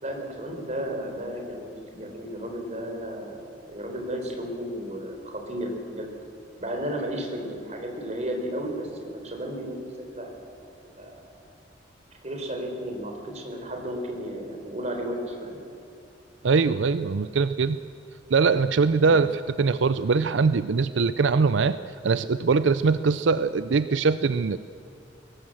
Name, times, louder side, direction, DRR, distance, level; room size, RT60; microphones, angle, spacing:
voice 1, 0.0-6.1 6.6-9.9 10.1-10.3 11.0-11.3 12.2-15.6, equal, 35° right, 2 dB, 4.1 m, -33 dB
voice 2, 16.4-17.8 18.3-21.8 22.0-24.6, right 4 dB, 75° right, 13 dB, 0.5 m, -22 dB
22.0 x 18.0 x 7.7 m, 2.7 s
head